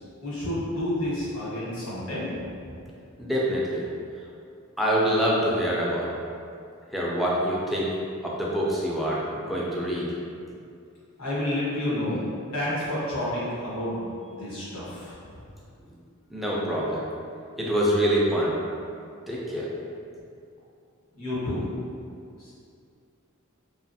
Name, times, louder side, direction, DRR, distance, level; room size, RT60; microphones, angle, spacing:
voice 1, 0.2-2.3 2.7-2.8 11.2-12.2 12.5-15.2 21.1-21.6 22.4-22.5, left 1 dB, 85° left, -9 dB, 1.1 m, -30 dB
voice 2, 3.2-3.8 4.8-6.1 6.9-7.9 8.2-10.1 16.3-17.0 17.6-18.5 19.3-19.7, equal, ahead, -6 dB, 0.3 m, -25 dB
2.7 x 2.3 x 2.6 m, 2.4 s
head